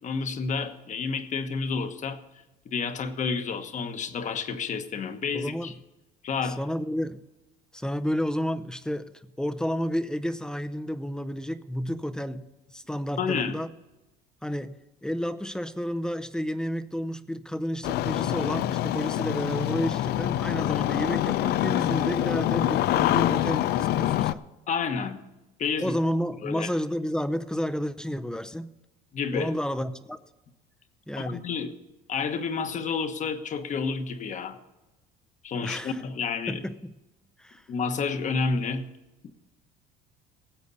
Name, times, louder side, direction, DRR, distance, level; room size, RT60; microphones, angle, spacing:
voice 1, 0.0-2.2 2.6-5.7 6.2-6.6 13.2-13.6 24.7-25.2 25.6-26.0 26.4-26.7 29.1-29.5 31.2-31.7 32.1-34.6 35.4-36.6 37.7-38.9, left 5 dB, 40° left, 9 dB, 1.2 m, -30 dB
voice 2, 5.3-5.7 6.4-7.2 7.7-12.4 12.7-13.7 14.4-24.4 25.8-28.7 29.3-30.2 31.1-31.4 35.6-36.0 36.5-36.9 37.4-37.6, equal, 5° left, 11 dB, 0.6 m, -31 dB
Engine starting, 17.8-24.3, left 13 dB, 60° left, 0.5 m, -25 dB
19.0 x 8.2 x 4.1 m, 1.0 s
cardioid pair, 110°, 19 cm